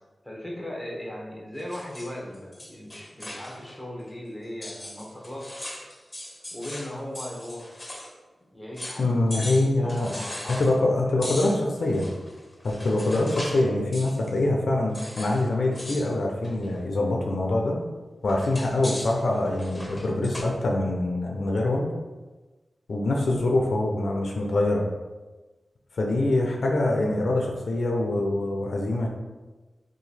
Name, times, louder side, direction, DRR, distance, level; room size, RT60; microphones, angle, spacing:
voice 1, 0.2-5.7 6.5-7.7 8.5-11.4, left 1 dB, ahead, -2 dB, 1.0 m, -38 dB
sound 1, 1.6-3.8 4.1-4.2 4.6-8.1 8.4-8.5 8.8-9.1 9.3-10.8 11.2-13.7 13.9-14.3 14.9-15.5 15.7-16.1 16.4-16.8 18.3-20.4, left 1 dB, 25° left, 0.8 m, -39 dB
voice 2, 9.0-10.1 10.5-12.1 12.6-17.8 18.2-21.9 22.9-24.8 26.0-29.1, left 2 dB, 75° left, 0 dB, 0.5 m, -24 dB
2.9 x 2.5 x 4.1 m, 1.2 s
cardioid pair, 45°, 0 cm